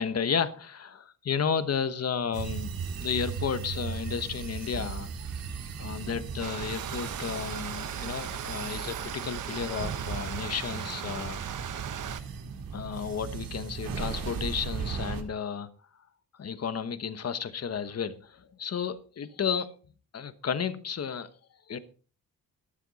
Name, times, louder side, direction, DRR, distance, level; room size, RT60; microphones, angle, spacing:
voice 1, 0.0-2.7 3.0-5.3 5.8-11.4 11.7-11.8 12.7-15.7 16.4-19.7 20.1-21.3 21.7-21.8, left 7 dB, 45° left, 1.2 m, -32 dB
sound 1, 2.3-15.2, right 6 dB, 90° right, 2.2 m, -37 dB
Stream, 6.4-12.2, right 9 dB, 60° right, 1.0 m, -38 dB
12.5 x 12.5 x 4.1 m
wide cardioid pair, 130°, 35 cm